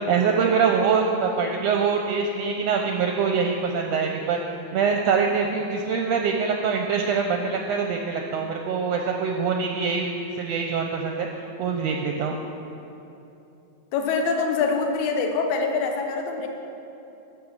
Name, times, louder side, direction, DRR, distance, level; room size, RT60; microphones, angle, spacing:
voice 1, 0.1-4.4 4.7-10.1 10.4-11.3 11.6-12.4, right 5 dB, 75° right, 2 dB, 1.6 m, -24 dB
voice 2, 13.9-16.5, left 4 dB, 85° left, 3 dB, 2.3 m, -24 dB
11.0 x 7.1 x 6.5 m, 2.9 s
omnidirectional pair, 3.3 m